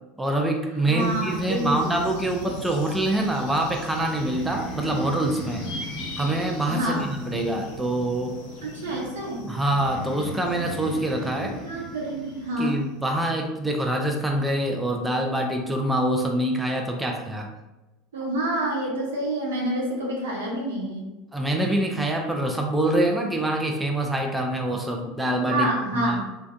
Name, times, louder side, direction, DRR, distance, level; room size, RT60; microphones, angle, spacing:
voice 1, 0.2-5.6 6.2-8.3 9.5-11.6 12.6-17.5 21.3-26.2, right 1 dB, 10° right, 2 dB, 0.4 m, -25 dB
voice 2, 0.8-1.9 6.7-7.1 8.6-9.5 11.3-12.8 18.1-21.0 25.5-26.2, right 1 dB, 85° right, -2 dB, 0.8 m, -28 dB
sound 1, 1.0-13.1, left 1 dB, 70° left, 0.6 m, -40 dB
Breathing, 4.1-7.8 9.6-12.7, right 1 dB, 20° left, 1.0 m, -38 dB
3.3 x 2.2 x 2.5 m, 1.1 s
hypercardioid pair, 85°, 0 cm